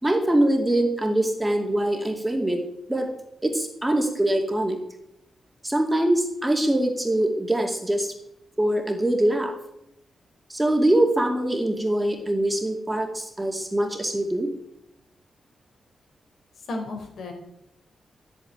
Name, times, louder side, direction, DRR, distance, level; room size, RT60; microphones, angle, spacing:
voice 1, 0.0-2.6 2.9-3.1 3.4-4.8 5.6-8.1 8.6-9.5 10.5-14.5, right 1 dB, 10° right, 3 dB, 2.4 m, -23 dB
voice 2, 16.6-17.3, left 2 dB, 65° left, 4 dB, 4.6 m, -33 dB
13.5 x 9.1 x 9.4 m, 0.79 s
wide cardioid pair, 160°, 0 cm